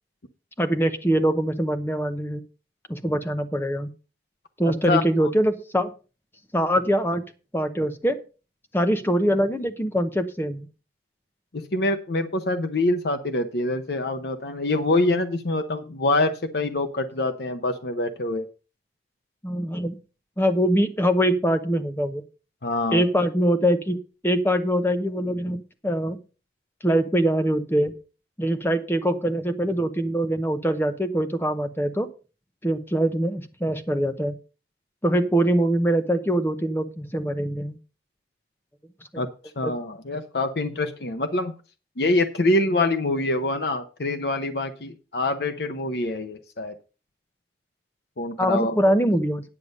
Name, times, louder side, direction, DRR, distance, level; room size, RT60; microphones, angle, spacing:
voice 1, 0.6-2.4 2.9-3.9 4.6-5.9 6.5-7.2 7.5-8.2 8.7-10.7 19.4-20.0 20.4-22.2 22.9-24.0 24.2-26.2 26.8-27.9 28.4-32.1 32.6-34.3 35.0-37.8 39.6-39.7 48.4-49.4, equal, 10° left, 8 dB, 0.9 m, -23 dB
voice 2, 4.7-5.3 11.5-18.4 22.6-23.0 39.2-39.3 39.6-41.5 42.0-46.7 48.2-48.9, left 2 dB, 70° left, 8 dB, 0.8 m, -25 dB
10.0 x 6.8 x 5.3 m, 0.34 s
head